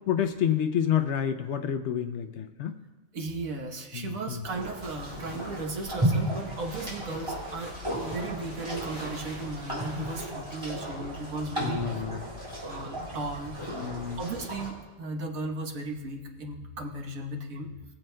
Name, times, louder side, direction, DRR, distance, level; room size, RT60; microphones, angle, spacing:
voice 1, 0.1-2.8 3.9-4.5 11.6-12.3 13.7-14.2, left 9 dB, 65° left, 7 dB, 0.8 m, -29 dB
voice 2, 3.1-7.7 8.0-12.0 12.6-13.5 14.2-17.7, right 2 dB, 80° right, 2 dB, 1.5 m, -36 dB
sound 1, 4.4-14.7, right 1 dB, 20° right, 3.3 m, -34 dB
sound 2, 4.8-10.3, equal, 45° right, 3.7 m, -48 dB
21.5 x 7.6 x 2.2 m, 1.2 s
omnidirectional pair, 1.4 m